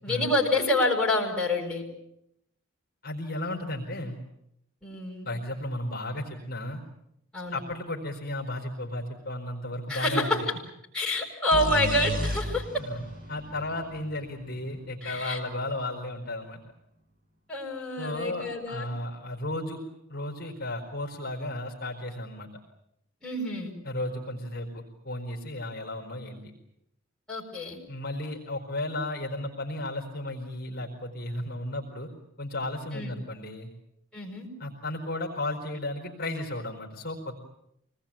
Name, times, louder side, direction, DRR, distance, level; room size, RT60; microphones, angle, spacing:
voice 1, 0.0-1.8 4.8-5.3 7.3-7.6 9.9-10.4 10.9-12.6 15.0-15.4 17.5-18.9 23.2-23.7 27.3-27.8 32.9-33.2 34.1-34.5, left 1 dB, 5° left, -3 dB, 7.0 m, -27 dB
voice 2, 3.0-4.2 5.2-6.8 7.5-10.5 12.8-16.6 18.0-19.8 20.1-22.5 23.8-26.4 27.9-32.1 32.4-33.7 34.6-37.3, left 1 dB, 40° left, 0 dB, 4.3 m, -34 dB
sound 1, 11.5-15.2, equal, 40° right, 4.8 m, -34 dB
26.5 x 20.5 x 8.8 m, 0.80 s
head